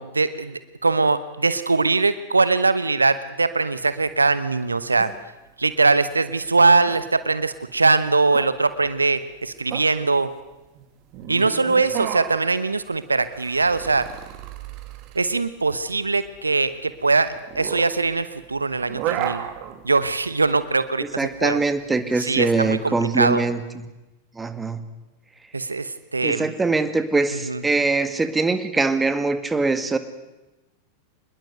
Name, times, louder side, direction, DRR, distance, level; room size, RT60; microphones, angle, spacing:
voice 1, 0.0-5.1 5.6-10.3 11.3-14.1 15.1-19.4 19.8-21.6 22.2-23.4 25.5-26.5 27.5-27.6, right 3 dB, 80° right, 14 dB, 1.0 m, -21 dB
sound 1, 3.7-23.0, right 11 dB, 40° right, 2.3 m, -35 dB
voice 2, 21.2-23.9 24.4-24.8 26.2-30.0, right 3 dB, 10° right, 10 dB, 2.0 m, -23 dB
26.0 x 21.0 x 8.0 m, 1.0 s
figure-of-eight pair, 90°, 0 cm